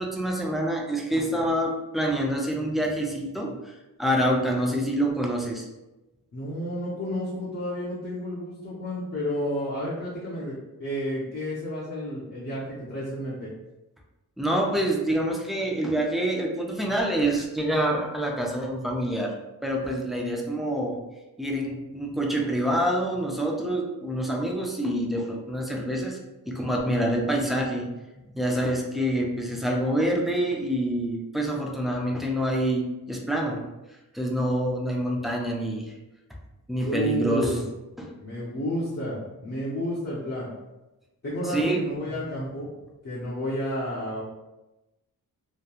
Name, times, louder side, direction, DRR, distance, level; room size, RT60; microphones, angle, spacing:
voice 1, 0.0-3.7 4.0-5.7 14.4-19.3 19.6-21.0 21.4-26.2 26.5-27.9 28.2-33.7 34.1-35.9 36.7-37.5 38.0-38.1 41.4-41.8 42.3-42.4, right 1 dB, ahead, -1 dB, 0.3 m, -26 dB
voice 2, 6.3-13.5 36.8-37.6 38.2-40.5 41.2-42.7 43.0-44.2, equal, 40° left, -9 dB, 0.7 m, -31 dB
2.9 x 2.2 x 2.3 m, 1.0 s
wide cardioid pair, 110°, 37 cm